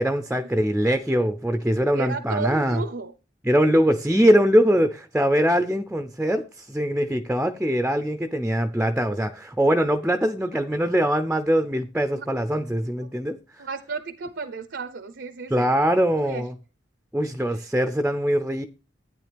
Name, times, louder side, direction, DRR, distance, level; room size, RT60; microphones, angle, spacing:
voice 1, 0.0-2.8 3.4-13.4 15.5-16.5 17.1-18.6, equal, 5° right, 0.5 m, -22 dB
voice 2, 1.9-3.1 12.1-12.3 13.0-13.1 13.6-15.7 16.2-16.5 17.5-17.7, right 4 dB, 75° right, 0.7 m, -33 dB
12.0 x 9.3 x 3.4 m
head